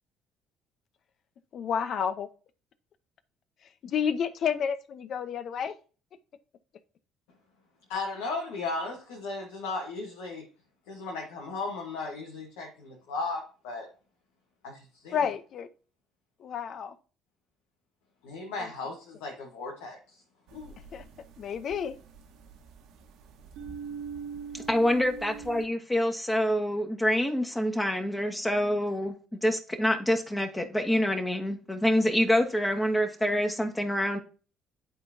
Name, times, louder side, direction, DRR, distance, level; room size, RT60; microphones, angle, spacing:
voice 1, 1.5-2.3 3.8-5.8 15.1-15.7 16.4-17.0 18.6-18.7 20.9-21.0 21.4-21.9, left 7 dB, 60° left, 0.8 m, -30 dB
voice 2, 7.9-10.4 10.9-13.9 14.6-15.2 18.2-20.0 20.5-20.7, left 3 dB, 85° left, 1.4 m, -36 dB
sound 1, 20.5-25.7, right 6 dB, 75° right, 1.4 m, -43 dB
voice 3, 24.7-29.1 29.4-34.2, equal, 15° left, 1.6 m, -26 dB
11.0 x 3.9 x 2.8 m
supercardioid pair, 65°, 0 cm